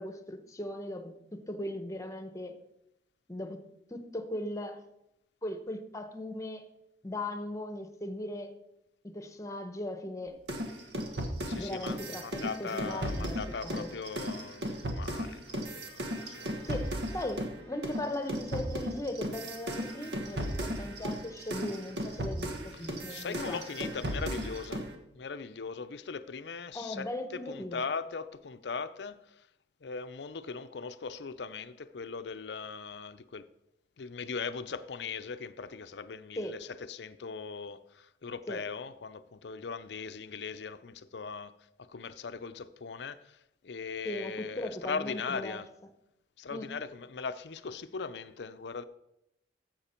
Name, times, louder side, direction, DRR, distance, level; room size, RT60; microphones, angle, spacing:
voice 1, 0.0-2.6 3.3-3.6 3.9-4.8 5.4-6.6 7.0-8.5 9.0-10.4 11.6-13.9 16.6-23.6 26.7-27.8 36.4-36.6 38.5-38.6 44.0-45.6 46.5-46.7, left 1 dB, 20° left, 0.9 m, -38 dB
sound 1, 10.5-17.6 17.8-24.9, equal, 70° right, 1.4 m, -36 dB
voice 2, 11.5-16.9 22.7-24.8 25.1-29.5 29.8-33.5 34.0-41.5 41.8-45.7 46.4-48.8, left 5 dB, 70° left, 0.5 m, -39 dB
12.0 x 7.6 x 4.4 m
head